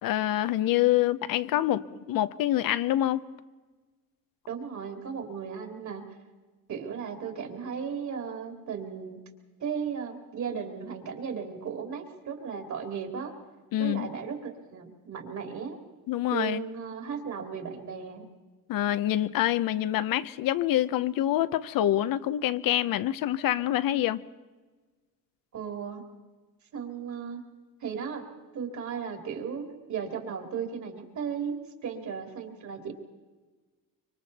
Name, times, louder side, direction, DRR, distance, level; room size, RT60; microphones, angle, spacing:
voice 1, 0.0-3.2 13.7-14.1 16.1-16.6 18.7-24.2, left 13 dB, 80° left, 0.8 m, -26 dB
voice 2, 4.5-6.0 6.7-9.2 9.6-13.3 13.8-15.8 16.3-18.3 25.5-26.0 26.7-27.4 27.8-28.2 28.5-32.9, right 6 dB, 55° right, 3.1 m, -35 dB
25.5 x 24.5 x 4.2 m
cardioid pair, 125°, 34 cm